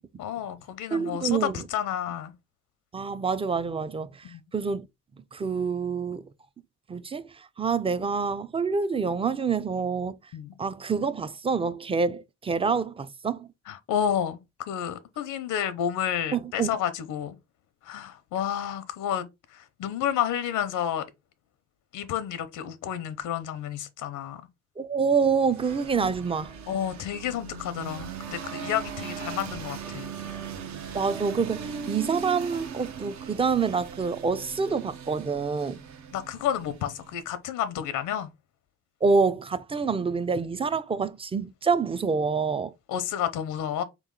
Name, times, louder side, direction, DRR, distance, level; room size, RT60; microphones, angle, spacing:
voice 1, 0.2-2.3 4.2-4.4 10.3-10.5 13.7-14.4 14.7-17.4 17.8-21.0 21.9-24.4 25.9-26.1 26.7-30.1 36.1-38.3 42.9-43.8, left 9 dB, 85° left, 0.7 m, -30 dB
voice 2, 0.9-1.6 2.9-4.9 5.3-6.3 6.9-10.2 10.6-13.5 16.3-16.7 24.8-26.5 30.9-35.8 39.0-42.7, right 5 dB, 20° right, 0.4 m, -27 dB
sound 1, 25.5-37.2, right 6 dB, 65° right, 0.8 m, -39 dB
3.6 x 3.0 x 3.6 m
cardioid pair, 90°, 30 cm